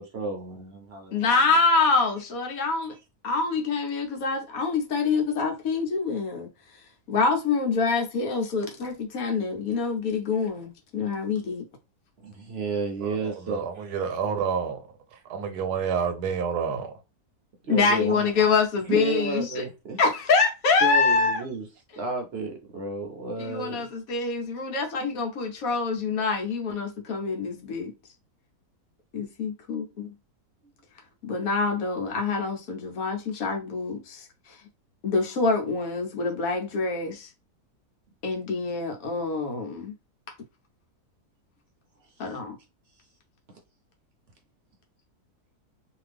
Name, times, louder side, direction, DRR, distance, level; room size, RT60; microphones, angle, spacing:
voice 1, 0.0-1.1 12.2-13.9 17.6-18.3 18.8-20.0 20.8-21.7 21.9-23.9 42.2-42.4, right 3 dB, 55° right, 0.8 m, -32 dB
voice 2, 1.1-2.9 3.2-6.5 7.1-11.6 17.7-19.6 20.0-21.4 23.4-27.9 29.1-30.1 31.2-34.6 35.0-37.3 38.2-39.9 42.2-42.6, left 4 dB, 65° left, 1.2 m, -26 dB
voice 3, 13.0-14.8 15.3-16.9, right 6 dB, 90° right, 1.2 m, -29 dB
2.7 x 2.6 x 3.3 m
omnidirectional pair, 1.6 m